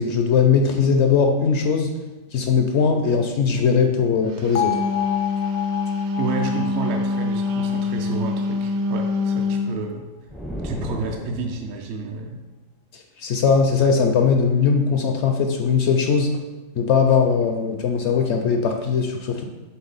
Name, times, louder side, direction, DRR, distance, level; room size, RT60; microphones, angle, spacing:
voice 1, 0.0-1.9 2.3-4.8 12.9-16.3 16.8-19.4, left 5 dB, 65° left, 4 dB, 0.8 m, -19 dB
Wind instrument woodwind instrument, 4.4-9.8, left 3 dB, 90° right, 1.0 m, -25 dB
Bell, 4.6-8.6, left 13 dB, 90° left, 1.1 m, -29 dB
voice 2, 6.2-10.1 10.6-12.4, right 4 dB, 60° right, 2 dB, 0.8 m, -30 dB
sound 1, 10.3-11.9, equal, ahead, 0.4 m, -33 dB
7.0 x 3.7 x 4.0 m, 1.1 s
omnidirectional pair, 1.4 m